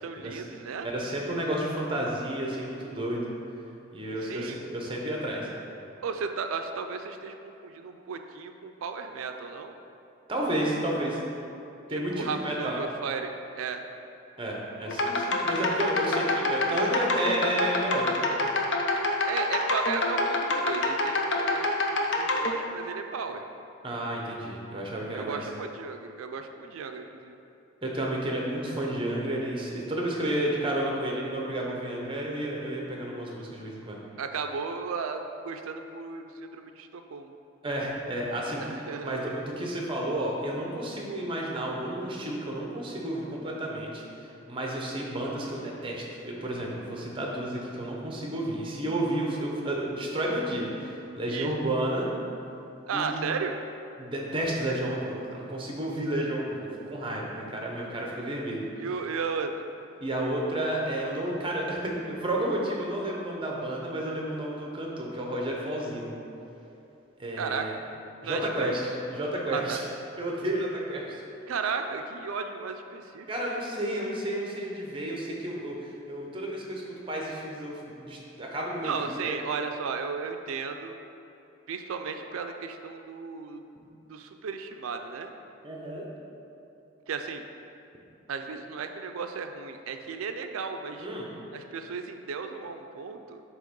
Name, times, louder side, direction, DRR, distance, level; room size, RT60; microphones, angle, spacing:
voice 1, 0.0-0.9 4.2-4.6 6.0-9.7 12.1-13.8 19.2-23.4 25.1-27.4 34.2-37.3 38.6-39.3 51.3-51.6 52.9-53.5 58.8-59.5 67.4-67.7 68.2-68.7 69.5-69.8 71.5-73.3 78.8-81.0 81.7-83.6 84.1-85.3 87.1-87.4 88.3-91.1 91.5-93.4, right 5 dB, 80° right, 6 dB, 0.4 m, -35 dB
voice 2, 0.8-3.3 3.9-5.5 10.3-11.2 11.9-12.8 14.4-18.3 23.8-25.4 27.8-34.0 37.6-38.6 39.0-52.1 52.9-53.2 54.0-58.7 60.0-66.1 67.2-67.7 68.2-69.8 70.2-71.0 73.3-79.4 85.6-86.1 91.0-91.3, right 1 dB, 25° right, -2 dB, 0.8 m, -31 dB
sound 1, 14.9-22.5, left 2 dB, 55° left, 0.6 m, -26 dB
7.6 x 3.0 x 5.2 m, 2.9 s
head